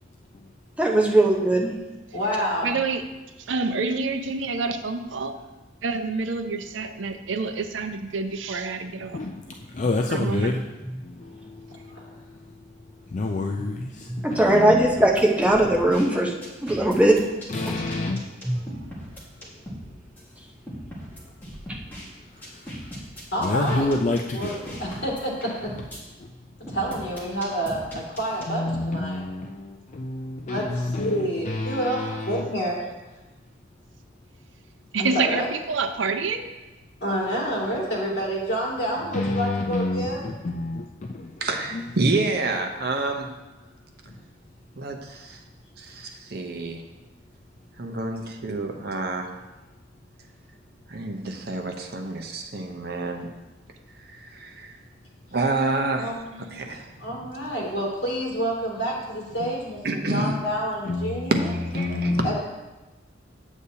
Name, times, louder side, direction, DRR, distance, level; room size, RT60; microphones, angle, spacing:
voice 1, 0.8-1.7 14.1-16.3 16.6-17.2 18.5-18.6, right 1 dB, 5° right, -1 dB, 0.7 m, -19 dB
voice 2, 2.1-2.8 11.9-12.1 23.3-23.9 24.3-25.3 25.6-25.7 26.7-29.2 30.5-30.6 31.0-32.0 32.3-32.9 35.0-35.5 37.0-40.2 56.0-56.6 57.0-59.8 60.1-61.4 62.2-62.4, equal, 60° left, -5 dB, 2.4 m, -28 dB
voice 3, 2.6-3.0 3.5-5.4 5.8-9.2 10.1-10.5 18.6-19.1 34.9-36.5, right 4 dB, 80° right, 8 dB, 0.6 m, -28 dB
voice 4, 9.1-10.6 11.0-12.6 13.1-15.1 17.5-18.3 22.3-23.0 23.4-25.0 26.2-26.3 27.9-28.0 28.5-32.4 39.0-41.5 41.7-41.9 59.4-59.5 60.8-62.4, left 2 dB, 40° left, 2 dB, 0.4 m, -29 dB
sound 1, 14.7-16.1 16.4-19.9 20.2-20.3 20.7-22.1 22.4-26.0 26.7-28.8, equal, 10° left, 1.7 m, -38 dB
voice 5, 41.4-43.3 44.8-45.4 45.8-46.8 47.8-49.3 50.9-53.3 54.1-54.8 55.3-57.1 59.8-60.4 61.2-62.1, right 2 dB, 55° right, 4 dB, 0.8 m, -28 dB
8.1 x 8.1 x 2.8 m, 1.1 s
head